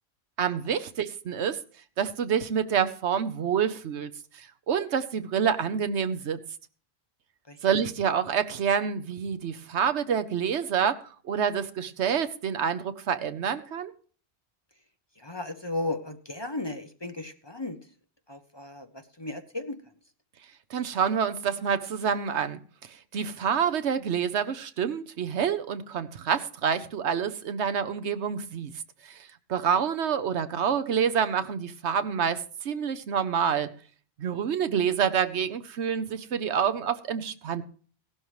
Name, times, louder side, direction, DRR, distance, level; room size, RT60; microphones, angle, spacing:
voice 1, 0.4-1.6 2.0-6.4 7.6-13.9 20.7-22.6 23.1-28.7 29.0-33.7 34.2-37.6, right 7 dB, 85° right, 11 dB, 1.1 m, -27 dB
voice 2, 15.2-17.8 18.3-19.8, left 2 dB, 25° left, 8 dB, 0.7 m, -35 dB
16.5 x 12.0 x 3.1 m, 0.43 s
omnidirectional pair, 1.1 m